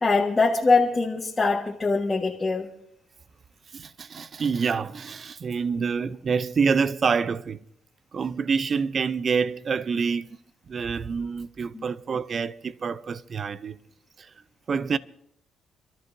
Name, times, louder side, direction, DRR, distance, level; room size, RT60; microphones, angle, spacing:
voice 1, 0.0-2.7 11.7-11.8, left 3 dB, 25° left, 1.4 m, -23 dB
voice 2, 3.7-7.6 8.1-10.4 10.7-13.8 14.7-15.0, right 5 dB, 45° right, 0.5 m, -27 dB
28.5 x 13.0 x 2.6 m
cardioid pair, 90°, 0 cm